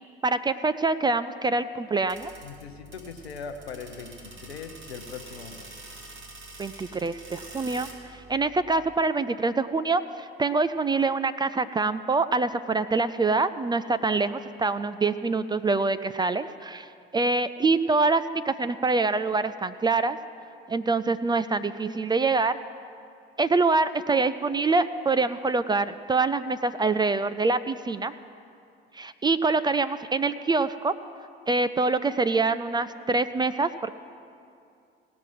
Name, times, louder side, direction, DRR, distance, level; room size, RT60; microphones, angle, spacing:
voice 1, 0.2-2.3 6.6-20.2 20.7-22.6 23.4-28.1 28.9-30.9 31.5-33.9, right 3 dB, 15° right, 12 dB, 0.3 m, -25 dB
sound 1, 2.1-9.0, right 2 dB, 40° right, 2.4 m, -46 dB
voice 2, 2.4-5.8, left 5 dB, 85° left, 7 dB, 0.8 m, -40 dB
17.5 x 6.0 x 7.5 m, 2.4 s
figure-of-eight pair, 50°, 31 cm